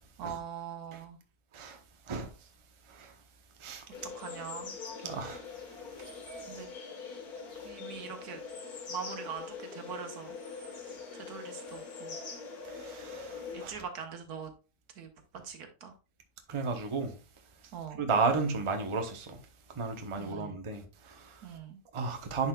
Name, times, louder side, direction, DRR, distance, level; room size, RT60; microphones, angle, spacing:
voice 1, 0.2-1.2 4.0-4.8 6.5-6.7 7.6-8.4 8.9-10.4 10.8-12.2 13.5-14.5 14.9-15.1 15.4-15.9 17.7-18.0 20.2-20.6 21.4-21.8, right 7 dB, 80° right, 1.6 m, -42 dB
sound 1, 3.9-13.7, left 5 dB, 75° left, 1.9 m, -43 dB
voice 2, 5.0-5.4 6.0-6.1 12.7-13.8 16.5-17.2 18.0-19.4 19.7-21.5 21.9-22.5, right 4 dB, 25° right, 0.7 m, -33 dB
10.0 x 4.4 x 2.3 m
omnidirectional pair, 1.6 m